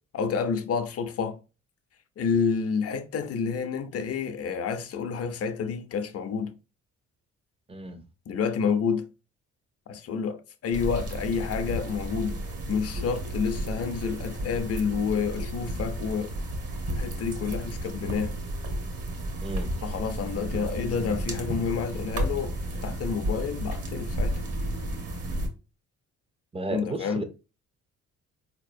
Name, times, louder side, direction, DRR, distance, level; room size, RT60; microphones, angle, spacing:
voice 1, 0.1-1.4 2.2-6.5 8.3-9.1 9.9-12.4 12.7-16.4 17.0-18.4 19.8-24.4 26.7-27.2, left 6 dB, 50° left, 0.6 m, -29 dB
voice 2, 7.7-8.0 19.4-19.7 26.5-27.2, right 2 dB, 20° right, 0.5 m, -33 dB
sound 1, 10.7-25.5, right 1 dB, 50° right, 1.0 m, -32 dB
4.0 x 2.9 x 2.5 m
cardioid pair, 90°, 30 cm